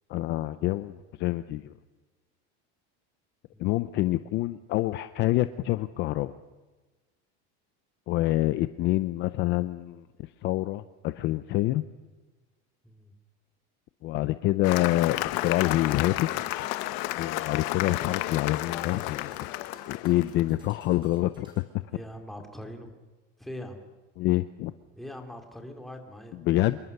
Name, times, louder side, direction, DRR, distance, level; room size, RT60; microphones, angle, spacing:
voice 1, 0.1-1.7 3.6-6.3 8.1-11.8 14.0-16.3 17.2-19.5 19.9-21.6 24.2-24.7 26.3-26.8, left 16 dB, 40° left, 13 dB, 0.6 m, -27 dB
Cheering / Applause, 14.6-20.4, left 17 dB, 60° left, 1.2 m, -32 dB
sound 1, 15.1-21.6, right 2 dB, 15° right, 4.0 m, -57 dB
voice 2, 21.9-22.9 23.4-23.8 25.0-26.4, left 1 dB, ahead, 4 dB, 2.6 m, -42 dB
26.5 x 22.0 x 6.7 m, 1.2 s
cardioid pair, 170°, 30 cm